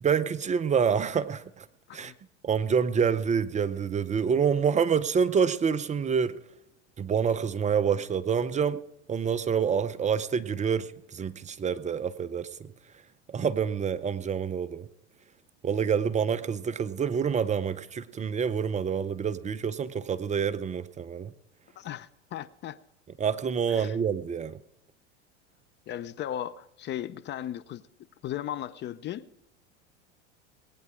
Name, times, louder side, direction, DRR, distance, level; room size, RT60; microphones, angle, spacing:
voice 1, 0.0-1.7 1.9-2.1 2.4-6.4 7.0-8.8 9.1-12.7 13.3-14.9 15.6-21.3 23.2-24.6, right 7 dB, 20° right, 0.6 m, -27 dB
voice 2, 21.8-22.8 23.7-24.0 25.9-27.9 28.2-29.3, left 11 dB, 30° left, 0.5 m, -36 dB
19.5 x 9.3 x 4.9 m
hypercardioid pair, 100°, 36 cm